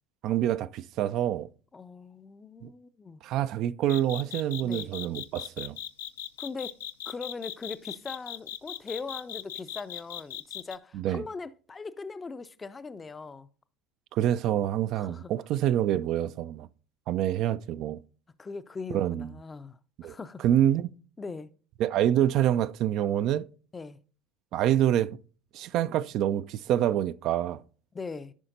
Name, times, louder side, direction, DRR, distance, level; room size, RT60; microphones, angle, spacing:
voice 1, 0.2-1.5 2.6-2.7 3.2-5.8 10.9-11.2 14.1-16.7 17.1-18.0 18.9-19.3 20.0-20.1 20.4-20.9 21.8-23.5 24.5-25.2 25.5-27.6, right 11 dB, 50° right, 0.3 m, -26 dB
voice 2, 1.7-3.2 4.6-4.9 6.4-13.5 14.9-15.3 18.4-20.5 21.2-21.5 23.7-24.0 27.9-28.3, left 4 dB, 20° left, 0.5 m, -40 dB
sound 1, 3.9-10.8, left 12 dB, 70° left, 0.5 m, -38 dB
15.0 x 5.7 x 2.6 m
figure-of-eight pair, 70°, 0 cm